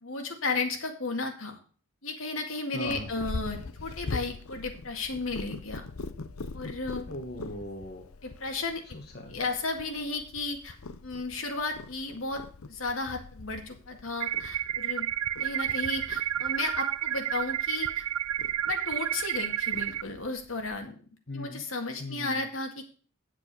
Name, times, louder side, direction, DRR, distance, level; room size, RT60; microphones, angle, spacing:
voice 1, 0.0-1.6 2.0-5.9 6.5-7.1 8.2-9.0 9.3-10.7 11.0-12.4 12.7-15.1 15.4-18.1 18.6-21.0 21.3-23.0, left 3 dB, 75° left, 4 dB, 2.0 m, -34 dB
voice 2, 2.7-3.1 7.1-8.1 8.9-9.4 21.3-21.6 22.0-22.4, left 1 dB, 50° left, 2 dB, 1.3 m, -38 dB
Purr, 2.8-20.8, left 3 dB, 90° left, 0.8 m, -43 dB
sound 1, 14.2-20.0, right 11 dB, 85° right, 0.4 m, -31 dB
9.4 x 7.6 x 5.4 m, 0.40 s
head